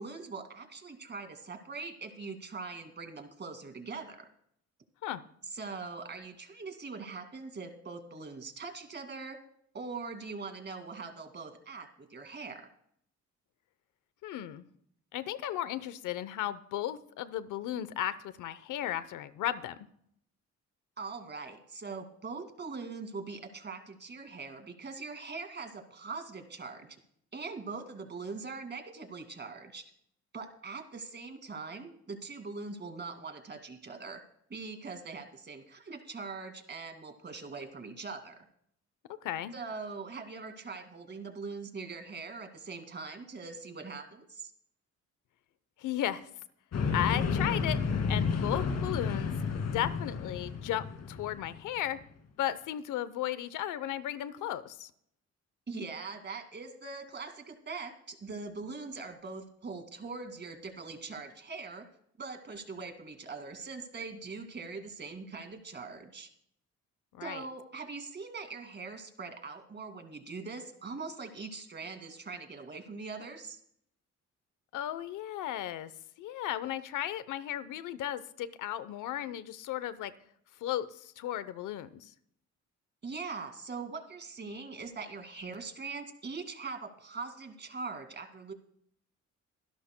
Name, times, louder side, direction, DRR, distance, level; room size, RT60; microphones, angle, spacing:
voice 1, 0.0-4.3 5.5-9.4 9.7-12.7 21.0-26.9 27.3-29.9 30.3-34.2 34.5-38.4 39.5-44.5 55.7-61.8 62.2-66.3 67.2-73.6 83.0-88.5, right 4 dB, 35° right, 6 dB, 2.3 m, -42 dB
voice 2, 14.2-14.6 15.1-19.8 39.2-39.5 45.8-46.3 46.9-47.8 48.1-52.0 52.4-54.9 67.1-67.4 74.7-75.9 76.2-80.1 80.6-82.1, left 12 dB, 85° left, 15 dB, 0.8 m, -35 dB
sound 1, 46.7-52.0, left 5 dB, 60° left, 2.5 m, -31 dB
24.5 x 11.5 x 2.2 m, 0.67 s
cardioid pair, 90°, 30 cm